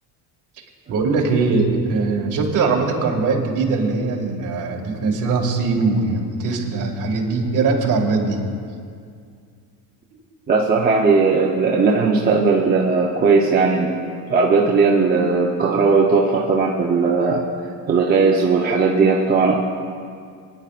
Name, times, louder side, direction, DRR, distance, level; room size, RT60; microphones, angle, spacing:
voice 1, 0.9-8.4, right 4 dB, 45° right, 0 dB, 2.2 m, -21 dB
voice 2, 10.5-13.9 14.3-17.5 17.9-19.6, right 4 dB, 20° right, -3 dB, 0.8 m, -17 dB
23.0 x 10.5 x 2.5 m, 2.3 s
cardioid pair, 150°, 43 cm